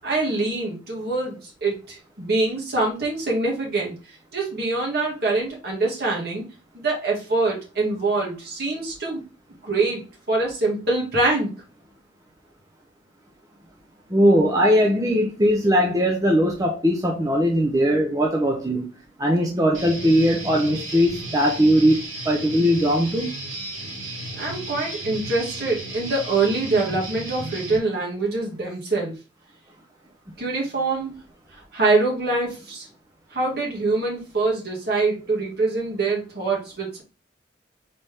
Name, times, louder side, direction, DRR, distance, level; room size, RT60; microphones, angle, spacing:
voice 1, 0.0-4.0 4.3-6.4 6.7-9.2 9.6-10.0 10.3-11.5 24.3-29.2 30.4-31.1 31.5-32.9 33.3-37.0, right 3 dB, 55° right, 1.8 m, -24 dB
voice 2, 14.1-18.9 19.2-22.0 22.3-23.4, equal, 15° right, 0.5 m, -20 dB
Guitar, 19.7-27.8, right 2 dB, 75° right, 2.5 m, -34 dB
4.1 x 3.5 x 3.3 m
head